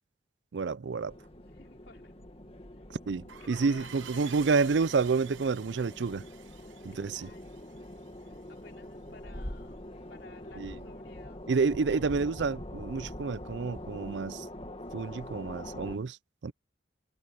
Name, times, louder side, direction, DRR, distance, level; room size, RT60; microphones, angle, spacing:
voice 1, 0.5-1.1 3.1-6.3 6.8-7.3 10.6-10.7 11.5-14.5 14.9-16.2 16.4-16.5, right 4 dB, 65° right, 0.5 m, -29 dB
sound 1, 1.1-16.0, left 1 dB, 30° left, 1.9 m, -44 dB
voice 2, 1.5-2.2 2.7-2.8 3.3-5.0 6.9-7.7 8.2-11.5, left 3 dB, 70° left, 3.5 m, -55 dB
sound 2, 3.3-8.6, right 9 dB, 85° right, 1.0 m, -49 dB
head